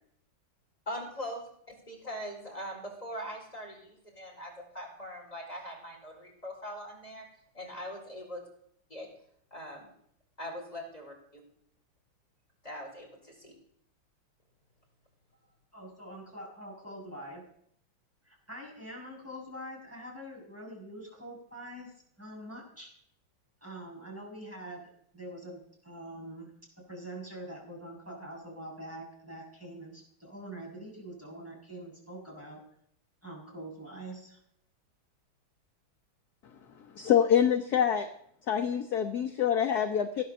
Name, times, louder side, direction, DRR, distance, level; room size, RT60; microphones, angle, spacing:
voice 1, 0.9-7.3 7.5-8.4 8.9-9.1 9.5-9.9 10.4-11.4 12.6-13.5, equal, 20° left, -1 dB, 4.7 m, -41 dB
voice 2, 15.7-17.4 18.2-22.9 23.6-24.8 25.1-26.5 26.9-32.6 33.2-34.4, right 1 dB, 5° right, -3 dB, 6.6 m, -44 dB
voice 3, 36.8-38.1 38.5-40.2, left 9 dB, 55° left, 4 dB, 1.4 m, -26 dB
17.0 x 9.9 x 6.9 m, 0.68 s
omnidirectional pair, 2.3 m